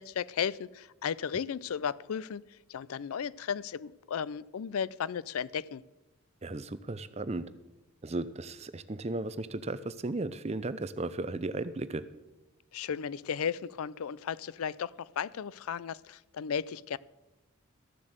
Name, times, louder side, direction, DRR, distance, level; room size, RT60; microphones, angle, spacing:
voice 1, 0.0-5.8 12.7-17.0, left 7 dB, 85° left, 21 dB, 0.4 m, -35 dB
voice 2, 6.4-7.5 8.0-12.0, right 2 dB, 30° right, 14 dB, 0.5 m, -35 dB
13.5 x 7.2 x 7.9 m, 1.1 s
head